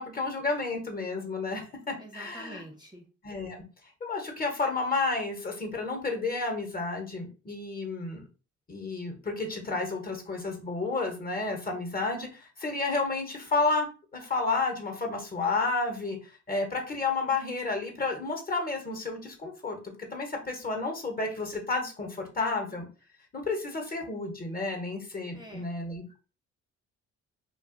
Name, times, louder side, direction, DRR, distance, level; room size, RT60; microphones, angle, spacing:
voice 1, 0.0-2.6 3.2-3.6 4.0-8.2 8.7-19.8 20.1-22.9 23.3-26.2, left 3 dB, 30° left, 3 dB, 1.0 m, -31 dB
voice 2, 2.0-3.0 25.3-25.7, right 1 dB, 15° right, 2 dB, 0.6 m, -46 dB
2.5 x 2.3 x 3.7 m, 0.34 s
cardioid pair, 90°, 30 cm